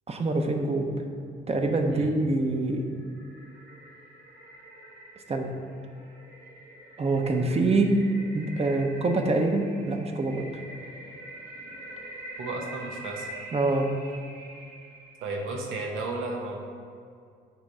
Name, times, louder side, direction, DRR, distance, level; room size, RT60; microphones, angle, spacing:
voice 1, 0.1-0.9 1.5-2.9 5.3-5.5 7.0-7.9 8.3-10.5 13.5-13.9, right 2 dB, 30° right, 4 dB, 0.8 m, -25 dB
sound 1, 2.4-15.8, right 1 dB, 55° right, 1.5 m, -45 dB
voice 2, 12.4-13.3 15.2-16.6, right 2 dB, 90° right, 0 dB, 1.1 m, -33 dB
9.1 x 3.1 x 4.8 m, 2.3 s
cardioid pair, 90°, 20 cm